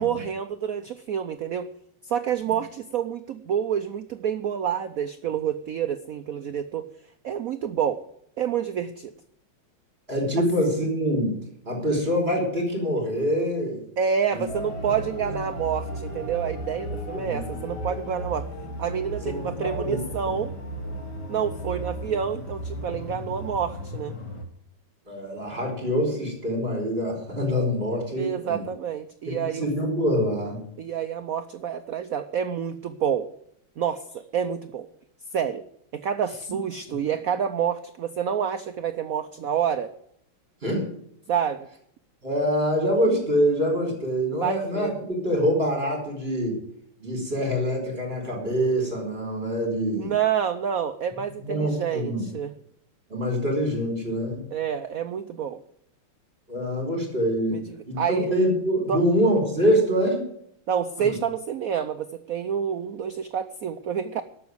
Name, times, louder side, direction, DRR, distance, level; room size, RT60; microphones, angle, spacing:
voice 1, 0.0-1.7 2.0-6.9 7.2-8.0 8.4-9.1 14.0-18.5 18.8-20.5 21.3-24.2 28.2-29.7 30.8-33.3 33.8-34.9 35.3-35.6 35.9-39.9 41.3-41.7 44.4-44.9 49.9-52.5 54.5-55.6 57.5-58.3 58.9-59.0 60.7-64.2, right 8 dB, 85° right, 10 dB, 0.7 m, -28 dB
voice 2, 10.1-11.3 11.6-13.8 14.3-14.4 15.3-15.4 17.1-17.6 19.3-20.0 25.1-28.6 29.2-30.6 40.6-40.9 42.2-46.6 47.0-50.1 51.4-52.3 53.1-54.4 56.5-57.6 57.9-60.2 61.0-61.1, equal, 25° right, 1 dB, 4.7 m, -25 dB
sound 1, 14.5-24.4, equal, 50° left, 2.3 m, -35 dB
12.0 x 7.2 x 9.4 m, 0.69 s
omnidirectional pair, 2.4 m